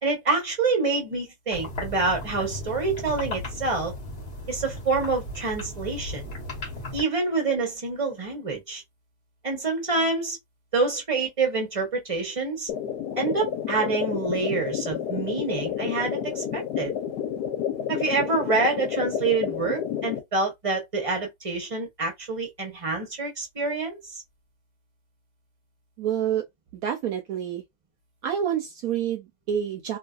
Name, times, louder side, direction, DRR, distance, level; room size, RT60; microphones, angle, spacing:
voice 1, 0.0-3.9 4.5-6.3 6.9-8.8 9.4-10.4 10.7-12.7 13.2-16.9 17.9-24.0, right 3 dB, 25° right, 0.8 m, -27 dB
sound 1, 1.5-7.0, left 1 dB, 40° left, 1.3 m, -36 dB
sound 2, 12.7-20.2, left 9 dB, 85° left, 1.3 m, -30 dB
voice 2, 26.0-26.4 26.7-27.6 28.2-30.0, right 9 dB, 70° right, 1.0 m, -28 dB
2.9 x 2.6 x 2.3 m
omnidirectional pair, 1.7 m